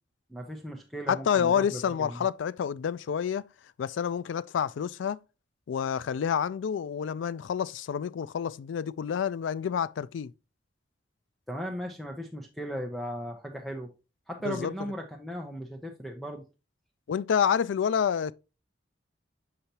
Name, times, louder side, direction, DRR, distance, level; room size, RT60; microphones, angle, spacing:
voice 1, 0.3-2.3 11.5-13.9 14.3-16.4, equal, ahead, 0.6 m, -37 dB
voice 2, 1.1-3.5 3.8-5.2 5.7-10.3 14.4-14.7 17.1-18.3, left 7 dB, 80° left, 0.3 m, -28 dB
6.6 x 5.6 x 2.8 m
head